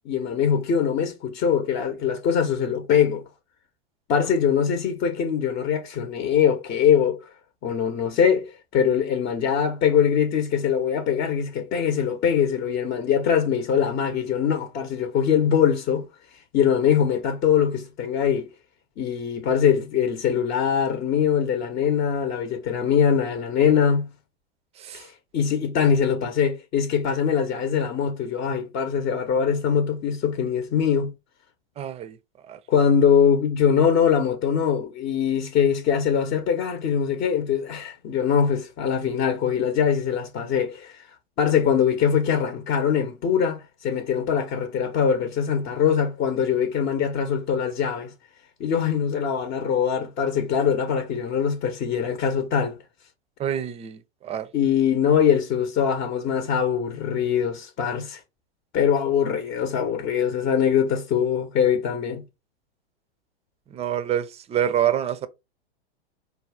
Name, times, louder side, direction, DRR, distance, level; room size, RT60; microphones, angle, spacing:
voice 1, 0.0-3.2 4.1-7.2 7.6-16.0 16.5-18.5 19.0-24.1 24.9-31.1 32.7-41.1 41.4-48.1 48.6-52.8 54.5-58.2 58.7-62.2, left 7 dB, 35° left, 0.9 m, -22 dB
voice 2, 31.8-32.2 32.5-32.6 53.4-54.5 63.7-65.3, right 10 dB, 20° right, 0.6 m, -26 dB
4.6 x 2.3 x 4.8 m
hypercardioid pair, 105°, 30 cm